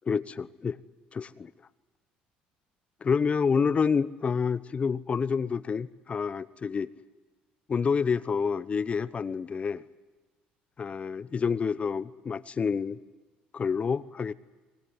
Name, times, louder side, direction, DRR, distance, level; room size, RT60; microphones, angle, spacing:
voice 1, 0.1-0.8 1.1-1.5 3.0-6.9 7.7-9.8 10.8-13.0 13.5-14.3, left 5 dB, 35° left, 16 dB, 0.8 m, -28 dB
24.5 x 20.5 x 9.8 m, 1.2 s
supercardioid pair, 80°, 4 cm